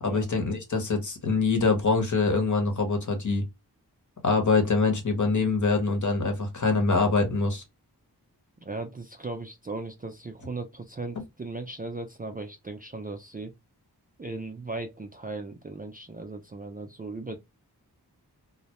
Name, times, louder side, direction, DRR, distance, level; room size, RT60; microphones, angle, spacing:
voice 1, 0.0-3.4 4.2-7.6, left 4 dB, 45° left, 0.9 m, -24 dB
voice 2, 8.6-13.5 14.2-17.4, right 3 dB, 25° right, 0.4 m, -37 dB
2.2 x 2.0 x 2.9 m
cardioid pair, 45°, 40 cm